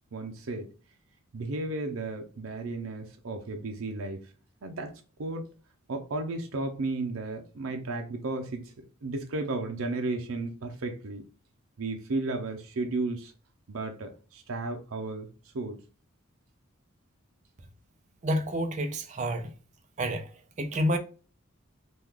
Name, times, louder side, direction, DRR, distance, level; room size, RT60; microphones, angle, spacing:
voice 1, 0.1-0.7 1.3-4.2 4.6-5.5 5.9-8.7 9.0-11.2 11.8-13.3 13.7-15.3 15.5-15.8, right 2 dB, 90° right, 0.5 m, -34 dB
voice 2, 18.2-19.5 20.0-20.3 20.6-21.0, equal, 35° right, 0.5 m, -28 dB
3.1 x 2.3 x 3.5 m
head